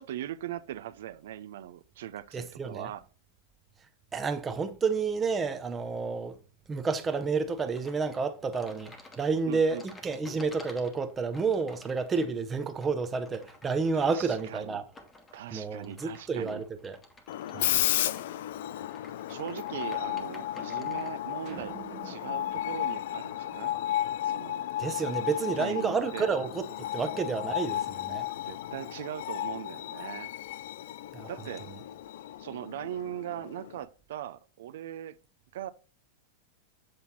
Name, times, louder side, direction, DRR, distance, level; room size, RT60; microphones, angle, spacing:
voice 1, 0.0-3.0 9.5-9.8 13.9-14.8 15.3-16.6 17.5-18.2 19.3-23.8 24.2-24.6 25.5-26.3 28.4-30.3 31.3-31.7 32.4-35.2 35.5-35.7, right 12 dB, 75° right, 0.5 m, -40 dB
voice 2, 2.3-2.9 4.1-6.4 6.7-14.8 15.5-17.0 17.5-17.7 24.8-26.7 26.9-28.3 31.1-31.3, right 4 dB, 15° right, 0.7 m, -30 dB
sound 1, 7.6-21.2, left 2 dB, 10° left, 1.1 m, -53 dB
Screech, 17.3-33.9, left 13 dB, 65° left, 0.3 m, -34 dB
sound 2, 21.5-23.9, right 10 dB, 40° right, 1.1 m, -48 dB
7.7 x 4.3 x 4.0 m
supercardioid pair, 155°, 0 cm